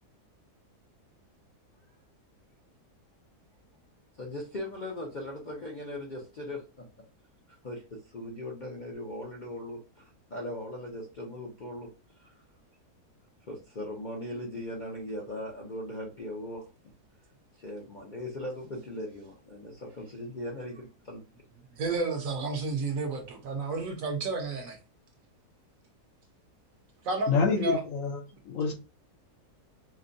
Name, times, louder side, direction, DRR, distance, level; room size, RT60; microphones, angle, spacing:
voice 1, 4.1-6.8 7.5-11.9 12.2-12.4 13.5-16.7 17.6-21.2, left 1 dB, 45° left, 0.6 m, -39 dB
voice 2, 21.8-24.8 27.0-27.8, right 3 dB, 65° right, 1.2 m, -31 dB
voice 3, 27.3-28.2 28.4-28.7, left 5 dB, 65° left, 1.0 m, -27 dB
5.2 x 2.1 x 2.6 m
omnidirectional pair, 1.7 m